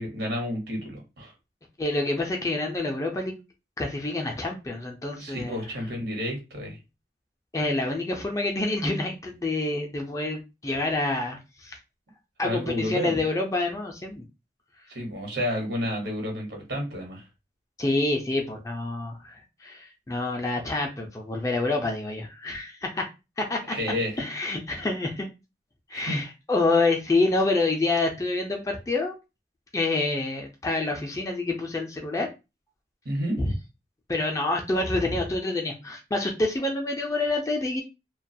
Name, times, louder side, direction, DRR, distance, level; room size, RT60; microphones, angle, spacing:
voice 1, 0.0-1.3 5.2-6.8 12.4-13.2 14.9-17.2 23.7-24.2 25.9-26.2 33.0-33.4, equal, 80° right, 1 dB, 1.0 m, -30 dB
voice 2, 1.8-3.3 3.8-5.6 7.5-11.8 12.4-14.2 14.9-15.0 17.8-23.1 23.4-23.8 24.2-25.3 25.9-29.2 29.7-32.3 33.4-33.5 34.1-37.8, left 2 dB, 20° left, 2 dB, 0.3 m, -27 dB
2.3 x 2.2 x 2.6 m, 0.27 s
head